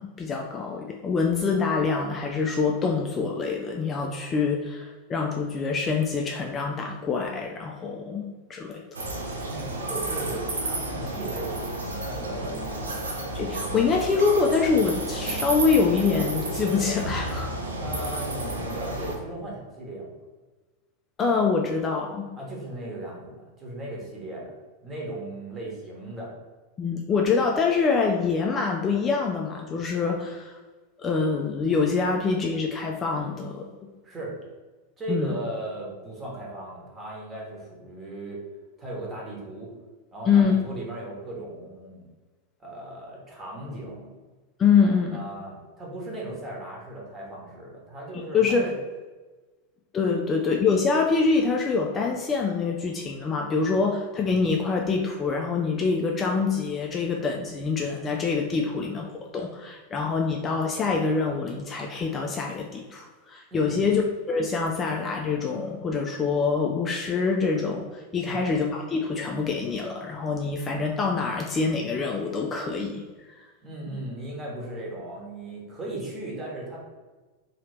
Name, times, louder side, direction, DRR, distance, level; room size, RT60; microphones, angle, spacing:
voice 1, 0.0-8.8 13.3-17.5 21.2-22.3 26.8-30.6 31.0-33.7 35.1-35.4 40.3-40.5 44.6-45.2 48.3-48.7 49.9-73.5, left 5 dB, 25° left, 0 dB, 0.3 m, -25 dB
sound 1, 8.9-19.2, right 2 dB, 70° right, 0.5 m, -31 dB
voice 2, 9.5-13.0 17.7-20.2 22.4-24.5 24.8-26.3 34.0-34.4 35.0-38.4 38.8-39.7 40.1-42.1 42.6-44.1 44.8-48.7 63.5-63.8 68.2-68.4 73.6-76.8, right 1 dB, 20° right, -3 dB, 1.1 m, -37 dB
2.8 x 2.7 x 3.2 m, 1.3 s
figure-of-eight pair, 90°, 0 cm